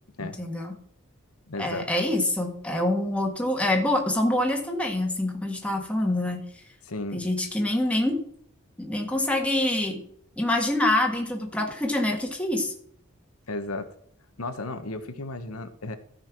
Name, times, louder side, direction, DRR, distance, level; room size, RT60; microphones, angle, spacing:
voice 1, 0.2-0.7 1.6-6.4 7.1-8.2 8.8-10.0 10.4-12.7, left 1 dB, 5° left, 1 dB, 1.7 m, -26 dB
voice 2, 1.5-1.9 6.9-7.2 13.5-13.9 14.4-16.0, left 2 dB, 90° left, 9 dB, 1.3 m, -34 dB
14.0 x 5.7 x 6.1 m, 0.66 s
head